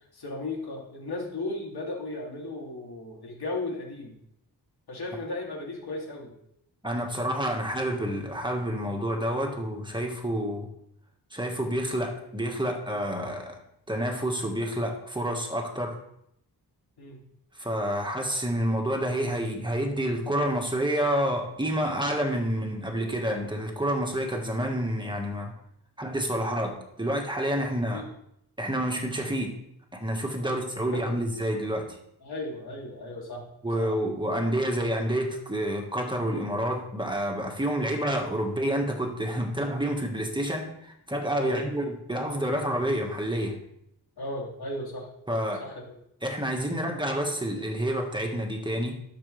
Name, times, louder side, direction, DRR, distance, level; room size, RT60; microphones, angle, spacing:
voice 1, 0.1-4.1 4.9-6.3 17.0-17.2 27.9-28.1 30.4-30.5 30.9-31.0 32.2-33.4 33.8-33.9 41.4-41.7 44.2-45.1 45.6-46.0, left 2 dB, 70° left, -2 dB, 3.0 m, -35 dB
voice 2, 6.8-10.7 11.3-13.6 13.9-16.0 17.5-25.5 26.0-28.0 28.6-29.6 29.9-32.0 33.6-43.6 45.3-45.6 46.2-48.9, equal, 10° right, 2 dB, 1.7 m, -28 dB
12.0 x 6.9 x 3.4 m, 0.76 s
wide cardioid pair, 100°, 40 cm